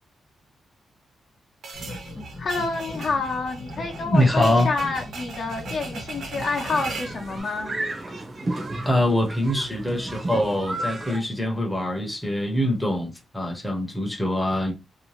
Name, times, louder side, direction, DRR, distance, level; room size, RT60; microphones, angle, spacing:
sound 1, 1.6-7.2, right 4 dB, 70° right, 0.7 m, -39 dB
sound 2, 1.7-7.4, left 2 dB, 35° left, 1.1 m, -39 dB
voice 1, 2.4-7.8, left 4 dB, 55° left, 0.8 m, -28 dB
voice 2, 4.1-4.7 8.8-14.7, left 1 dB, 5° left, 0.7 m, -23 dB
sound 3, 6.2-11.2, right 2 dB, 30° right, 0.7 m, -33 dB
2.7 x 2.1 x 3.1 m
wide cardioid pair, 135°, 0 cm